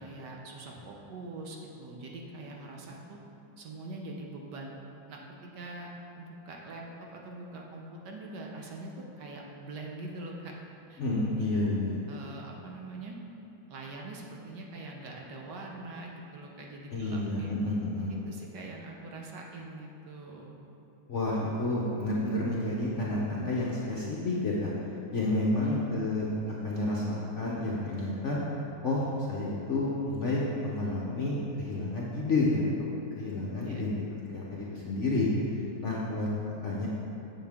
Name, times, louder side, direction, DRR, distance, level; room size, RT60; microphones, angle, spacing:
voice 1, 0.0-3.2 3.6-4.7 5.1-10.5 10.9-11.0 11.3-11.5 12.1-13.2 13.7-17.5 18.1-20.6 25.6-26.0 33.6-33.8, right 2 dB, 65° right, -1 dB, 1.4 m, -43 dB
voice 2, 11.0-12.0 16.9-18.1 21.1-24.7 25.1-28.4 28.8-32.6 33.2-33.9 34.3-35.3 35.8-36.3 36.6-36.9, left 2 dB, 55° left, -5 dB, 0.8 m, -30 dB
7.8 x 7.7 x 3.5 m, 2.9 s
omnidirectional pair, 2.1 m